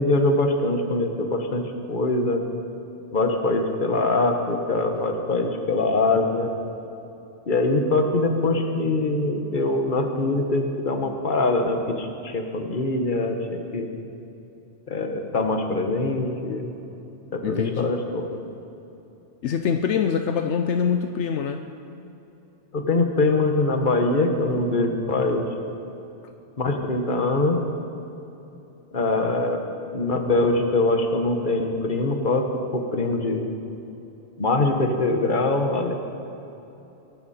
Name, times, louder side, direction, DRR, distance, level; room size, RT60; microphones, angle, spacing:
voice 1, 0.0-1.6 1.9-2.4 3.1-6.5 7.5-13.9 14.9-16.7 17.3-18.4 22.7-25.5 26.6-27.6 28.9-29.6 29.9-32.4 32.7-33.4 34.4-35.9, left 2 dB, 45° left, 4 dB, 1.5 m, -23 dB
voice 2, 17.4-17.9 19.4-21.6, left 7 dB, 75° left, 7 dB, 1.0 m, -24 dB
22.0 x 12.0 x 4.3 m, 3.0 s
omnidirectional pair, 1.2 m